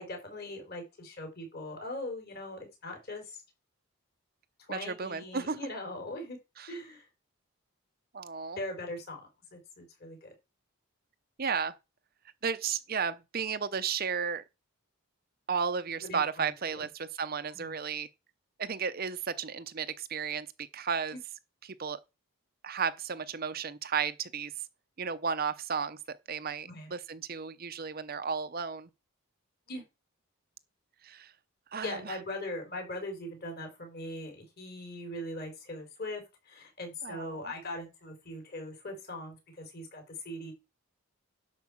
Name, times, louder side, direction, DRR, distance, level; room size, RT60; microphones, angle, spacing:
voice 1, 0.0-3.4 4.7-6.4 6.7-7.1 8.6-9.2 9.5-10.3 16.0-16.9 17.5-17.7 21.1-21.2 26.6-26.9 29.7-29.8 31.8-40.5, left 1 dB, 45° left, 4.2 m, -40 dB
voice 2, 4.7-5.6 6.6-6.7 8.1-8.6 11.4-11.7 12.4-14.4 15.5-18.1 18.6-20.5 20.7-21.1 21.6-22.0 22.6-24.5 25.0-28.9 31.0-31.3 31.7-32.2 37.0-37.5, right 6 dB, 40° right, 0.6 m, -33 dB
10.5 x 4.8 x 7.1 m
head